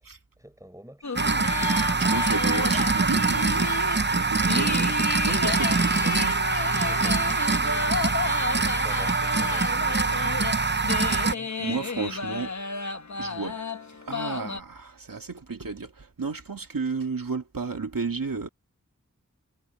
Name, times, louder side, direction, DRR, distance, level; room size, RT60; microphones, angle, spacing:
voice 1, 0.4-1.2 4.6-4.8 6.8-11.8, equal, 10° right, 6.2 m, -48 dB
sound 1, 1.0-14.6, left 4 dB, 60° left, 1.1 m, -32 dB
sound 2, 1.2-11.3, right 4 dB, 35° right, 0.8 m, -24 dB
voice 2, 1.9-4.9 5.2-6.4 11.6-12.6 13.2-13.6 14.0-18.5, right 4 dB, 85° right, 2.3 m, -32 dB
wide cardioid pair, 55°, 33 cm